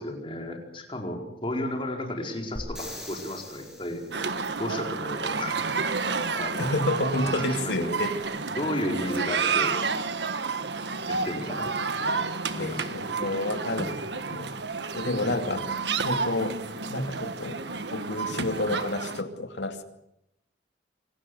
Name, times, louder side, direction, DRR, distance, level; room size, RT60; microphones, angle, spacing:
voice 1, 0.0-4.0 4.6-5.7 6.3-6.7 7.2-8.0 8.5-9.8 11.0-13.4, left 1 dB, 30° left, 2 dB, 4.7 m, -34 dB
sound 1, 2.6-4.4 8.2-8.3, left 1 dB, 5° right, 7.1 m, -42 dB
sound 2, 4.1-19.2, right 4 dB, 75° right, 1.5 m, -30 dB
voice 2, 6.6-8.2 12.6-14.5 14.9-15.6 16.0-16.5 16.9-17.6 17.9-19.8, left 2 dB, 80° left, 6 dB, 2.6 m, -29 dB
27.0 x 19.0 x 8.0 m, 0.80 s
head